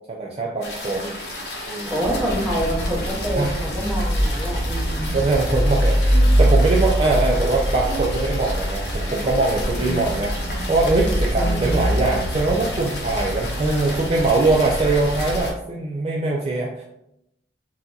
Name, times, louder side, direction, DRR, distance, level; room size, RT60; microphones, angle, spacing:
voice 1, 0.1-1.2 1.7-2.0 3.3-3.5 5.1-10.3 10.7-16.8, right 3 dB, 35° right, -2 dB, 0.3 m, -22 dB
sound 1, 0.6-15.5, left 1 dB, 65° left, 0.8 m, -33 dB
voice 2, 1.9-5.2 9.8-10.7 11.3-11.8, right 1 dB, 5° right, -6 dB, 0.9 m, -27 dB
sound 2, 2.0-15.4, equal, 90° right, 0.7 m, -24 dB
Keyboard (musical), 7.8-12.4, right 7 dB, 55° right, 0.9 m, -43 dB
2.7 x 2.3 x 3.8 m, 0.80 s
head